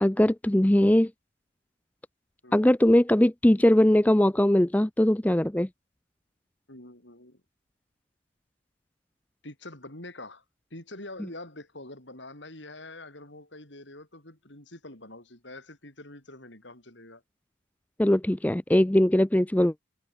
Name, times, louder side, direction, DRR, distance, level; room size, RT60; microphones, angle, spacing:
voice 1, 0.0-1.1 2.5-5.7 18.0-19.7, left 1 dB, 10° left, 0.4 m, -21 dB
voice 2, 6.7-7.4 9.4-10.4 10.7-17.2, left 2 dB, 65° left, 6.7 m, -45 dB
open air
head